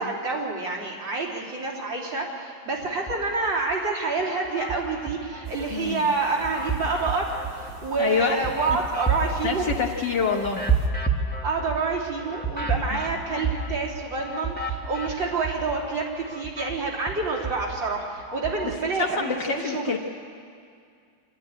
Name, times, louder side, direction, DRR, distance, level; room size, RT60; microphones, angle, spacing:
voice 1, 0.0-9.7 11.3-19.9, right 3 dB, 80° right, -3 dB, 4.1 m, -28 dB
sound 1, 2.9-3.8 4.2-5.8 6.2-15.9 16.2-18.8, right 4 dB, 5° left, 1.3 m, -31 dB
sound 2, 5.4-10.9, right 3 dB, 55° right, 2.5 m, -45 dB
voice 2, 5.7-6.0 8.0-8.4 9.4-10.6 12.9-13.0 18.9-20.0, left 6 dB, 65° left, 0 dB, 2.0 m, -26 dB
26.0 x 12.5 x 9.7 m, 2.3 s
omnidirectional pair, 2.0 m